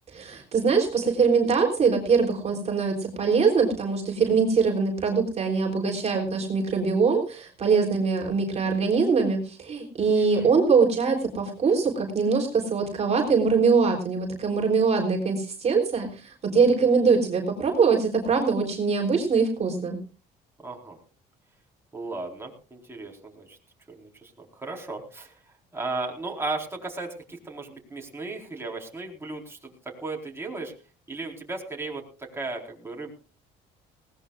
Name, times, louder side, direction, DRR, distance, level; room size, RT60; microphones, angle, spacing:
voice 1, 0.1-20.0, right 5 dB, 40° right, 0 dB, 3.6 m, -23 dB
voice 2, 10.1-10.5 20.6-21.0 21.9-23.6 23.9-25.4 25.7-29.7 30.0-30.7 31.1-33.1, right 3 dB, 15° right, 0 dB, 4.3 m, -35 dB
20.0 x 18.0 x 2.4 m, 0.35 s
cardioid pair, 110°, 17 cm